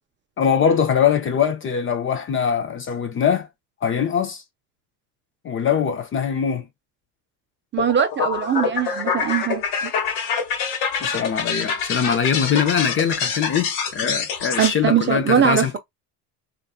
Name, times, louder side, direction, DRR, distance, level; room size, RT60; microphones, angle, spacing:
voice 1, 0.4-3.5 3.8-4.4 5.4-6.7 11.0-15.8, left 7 dB, 30° left, 0.5 m, -22 dB
voice 2, 7.7-9.6 14.6-15.6, right 8 dB, 25° right, 0.5 m, -20 dB
sound 1, 7.8-14.7, left 6 dB, 70° left, 1.2 m, -26 dB
2.7 x 2.5 x 2.3 m
supercardioid pair, 100°, 45 cm